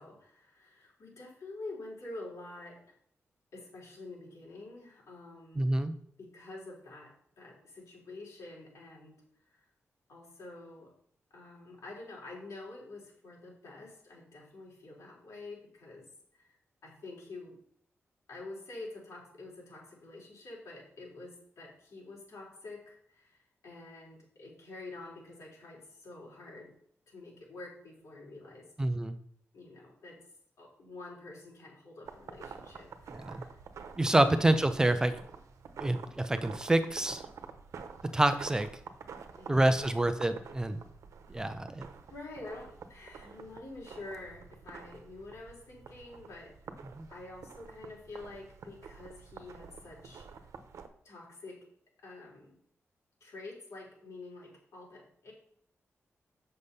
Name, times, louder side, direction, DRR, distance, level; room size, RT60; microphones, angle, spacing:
voice 1, 0.0-2.9 3.5-5.7 6.2-7.1 7.4-9.2 9.5-9.6 10.1-10.9 11.3-16.1 16.3-17.5 18.3-26.7 27.1-28.7 29.5-30.2 30.6-33.5 34.1-34.5 39.4-39.9 41.3-41.8 42.1-46.5 47.1-50.3 51.0-51.6 52.0-52.6 53.2-55.3, left 2 dB, 80° left, -3 dB, 4.3 m, -48 dB
voice 2, 5.6-5.9 28.8-29.2 33.3-33.4 34.0-35.2 35.8-37.2 38.1-38.7 39.5-40.8 41.3-41.9 47.0-47.1, right 1 dB, 15° right, 9 dB, 0.5 m, -27 dB
sound 1, 32.1-50.9, right 6 dB, 85° right, 1.0 m, -48 dB
8.2 x 6.6 x 5.5 m, 0.64 s
wide cardioid pair, 165°, 5 cm